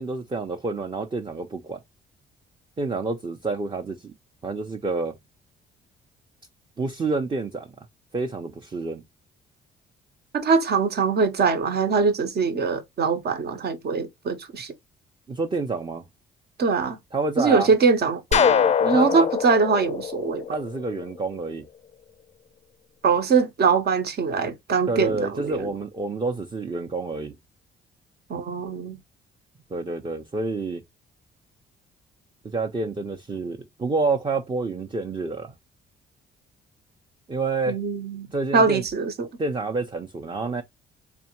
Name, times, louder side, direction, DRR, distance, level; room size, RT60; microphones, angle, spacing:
voice 1, 0.0-1.8 2.8-4.1 4.4-5.2 6.8-7.7 8.1-9.0 15.3-16.0 17.1-17.7 18.9-19.3 20.5-21.7 24.9-27.4 29.7-30.8 32.4-35.5 37.3-37.8 38.3-38.8 39.4-40.6, right 3 dB, 25° right, 0.7 m, -28 dB
voice 2, 10.3-14.7 16.6-17.0 17.4-20.4 23.0-25.6 28.3-28.9 37.7-38.3 38.5-39.3, right 5 dB, 55° right, 1.1 m, -22 dB
sound 1, 18.3-21.1, left 8 dB, 35° left, 0.4 m, -23 dB
3.5 x 3.4 x 3.0 m
cardioid pair, 90°, 20 cm